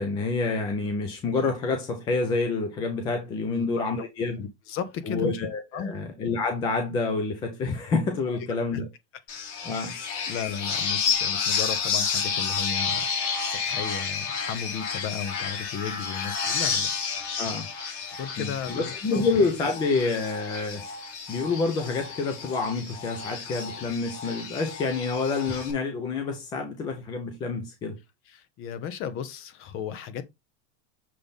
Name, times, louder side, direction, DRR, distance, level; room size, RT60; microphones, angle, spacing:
voice 1, 0.0-4.4 5.1-8.9 9.6-10.0 17.4-17.7 18.4-20.9 21.3-28.0, left 3 dB, 10° left, 0.3 m, -28 dB
voice 2, 3.5-4.1 4.4-5.4 5.7-5.9 8.7-8.8 9.7-10.0 10.3-16.9 18.2-19.3 28.3-30.2, left 7 dB, 30° left, 0.9 m, -35 dB
sound 1, 9.3-25.7, left 6 dB, 55° left, 2.6 m, -31 dB
6.7 x 3.5 x 3.9 m
supercardioid pair, 155°, 43 cm